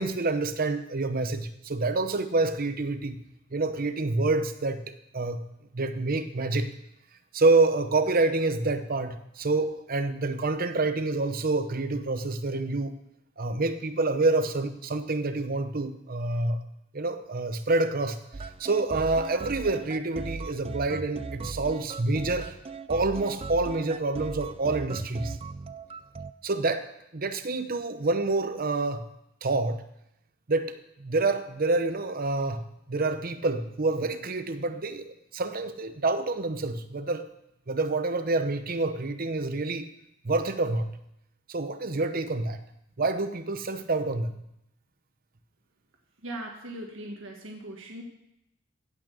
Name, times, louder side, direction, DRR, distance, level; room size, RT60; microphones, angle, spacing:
voice 1, 0.0-3.2 3.5-5.4 5.7-6.7 7.3-12.9 13.4-16.6 16.9-22.5 22.9-25.4 26.4-29.1 29.4-29.8 30.5-37.3 37.7-39.9 40.2-40.9 41.5-42.6 43.0-44.3, right 3 dB, 50° right, 9 dB, 0.9 m, -27 dB
sound 1, 18.3-26.3, right 4 dB, 30° right, 0.4 m, -38 dB
voice 2, 46.2-48.0, right 1 dB, 80° right, 1 dB, 1.8 m, -39 dB
16.0 x 6.2 x 6.8 m, 0.82 s
head